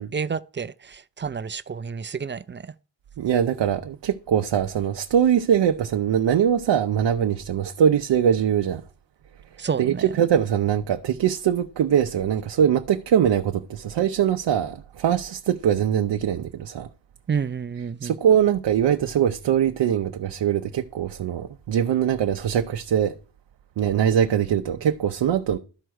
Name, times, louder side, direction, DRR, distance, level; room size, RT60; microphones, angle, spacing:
voice 1, 0.0-2.7 9.6-10.1 17.3-18.1, right 6 dB, 30° right, 0.4 m, -30 dB
voice 2, 3.2-8.8 9.8-16.9 18.0-23.1 23.8-25.6, right 9 dB, 75° right, 0.7 m, -22 dB
12.5 x 4.6 x 6.3 m
wide cardioid pair, 105°, 43 cm